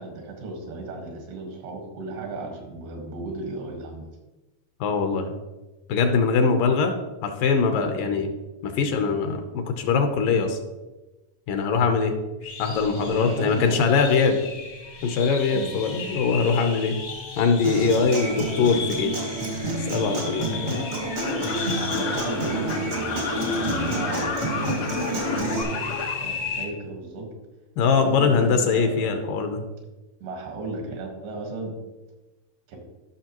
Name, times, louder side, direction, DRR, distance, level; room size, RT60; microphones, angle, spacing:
voice 1, 0.0-4.1 8.0-8.2 13.0-13.8 15.5-15.7 21.7-27.3 28.0-29.2 30.2-31.7 32.7-32.8, right 3 dB, 85° right, 2 dB, 3.5 m, -35 dB
voice 2, 4.8-5.3 5.9-7.0 7.2-8.3 8.6-10.6 11.5-12.1 12.6-14.4 15.0-17.0 17.4-19.2 19.8-20.8 27.8-29.6, left 5 dB, 75° left, 5 dB, 2.3 m, -22 dB
sound 1, 12.4-26.7, left 4 dB, 50° left, 1.0 m, -36 dB
Human voice / Acoustic guitar, 17.6-25.6, right 2 dB, 60° right, 0.8 m, -29 dB
sound 2, 21.1-26.1, left 3 dB, 90° left, 3.3 m, -30 dB
14.5 x 6.0 x 3.0 m, 1.1 s
omnidirectional pair, 4.3 m